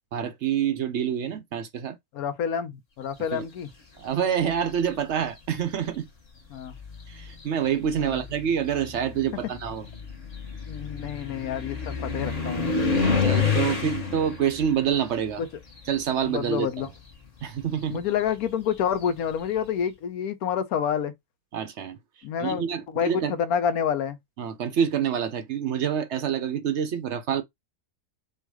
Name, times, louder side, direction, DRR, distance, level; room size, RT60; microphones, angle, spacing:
voice 1, 0.1-2.0 3.3-3.5 4.0-6.1 7.1-9.9 13.2-15.4 15.9-16.7 17.4-18.0 21.5-22.0 22.4-23.3 24.4-27.4, right 8 dB, 60° right, 0.8 m, -27 dB
voice 2, 2.1-3.7 6.5-6.7 8.0-8.2 10.7-12.7 15.4-15.5 16.2-16.9 17.9-21.1 22.2-24.2, left 8 dB, 70° left, 1.1 m, -28 dB
sound 1, 4.4-4.9 5.9-6.0 6.6-16.5 16.8-19.4, left 5 dB, 30° left, 1.0 m, -30 dB
4.5 x 2.3 x 4.7 m
omnidirectional pair, 1.7 m